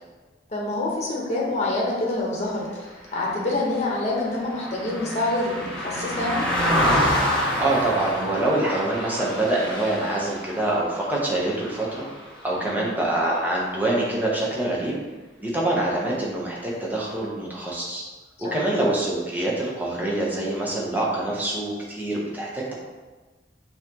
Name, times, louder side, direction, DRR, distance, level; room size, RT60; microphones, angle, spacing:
voice 1, 0.5-2.9 3.1-6.5 12.6-12.8 18.4-18.7, left 2 dB, 40° left, -3 dB, 1.0 m, -26 dB
Car passing by, 3.2-12.7 13.1-13.3, equal, 5° left, 1.2 m, -28 dB
voice 2, 7.6-12.1 12.4-14.9 15.4-18.0 18.4-22.7, right 1 dB, 10° right, -4 dB, 0.9 m, -25 dB
5.6 x 2.9 x 2.9 m, 1.3 s
head